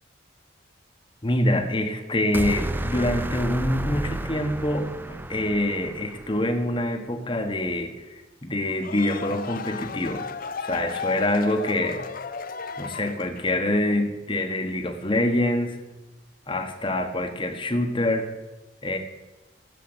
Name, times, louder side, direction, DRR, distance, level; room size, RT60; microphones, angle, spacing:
voice 1, 1.2-8.1 8.4-10.3 10.6-12.0 12.8-15.8 16.5-18.3 18.8-19.0, left 1 dB, 25° left, 5 dB, 1.4 m, -25 dB
sound 1, 2.3-6.6, right 1 dB, 10° right, 0.4 m, -32 dB
sound 2, 8.6-13.6, left 5 dB, 45° left, 0.6 m, -34 dB
16.0 x 7.6 x 8.1 m, 1.1 s
head